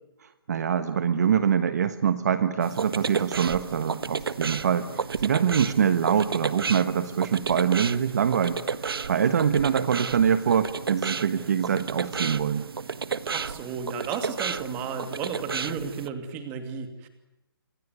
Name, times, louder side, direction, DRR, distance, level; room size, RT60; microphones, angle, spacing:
voice 1, 0.2-12.6, right 8 dB, 45° right, 11 dB, 1.3 m, -24 dB
sound 1, 2.6-16.1, right 5 dB, 70° right, 1.4 m, -32 dB
voice 2, 13.3-17.1, right 6 dB, 15° right, 7 dB, 2.6 m, -33 dB
28.0 x 22.5 x 9.6 m, 0.92 s
hypercardioid pair, 170°, 13 cm